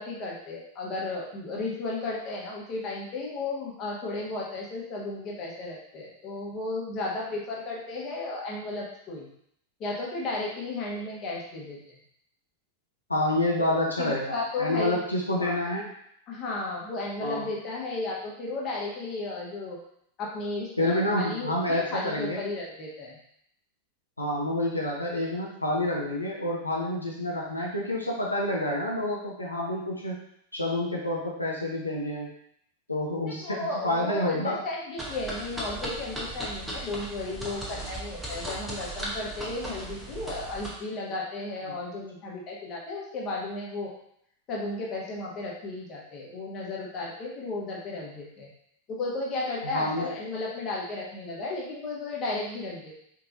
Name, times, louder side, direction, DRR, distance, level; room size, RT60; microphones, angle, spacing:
voice 1, 0.0-9.3 9.8-12.0 13.7-15.0 15.4-15.5 16.3-19.8 20.2-23.2 33.4-43.9 44.5-48.5 48.9-53.0, left 2 dB, 35° left, -4 dB, 1.2 m, -34 dB
voice 2, 13.1-15.9 17.2-17.5 20.8-22.4 24.2-30.1 30.5-32.3 32.9-34.6 49.6-50.2, left 1 dB, 85° left, -3 dB, 0.6 m, -28 dB
sound 1, 35.0-40.7, right 1 dB, 5° right, 1.0 m, -37 dB
4.5 x 2.9 x 2.6 m, 0.71 s
figure-of-eight pair, 90°, 0 cm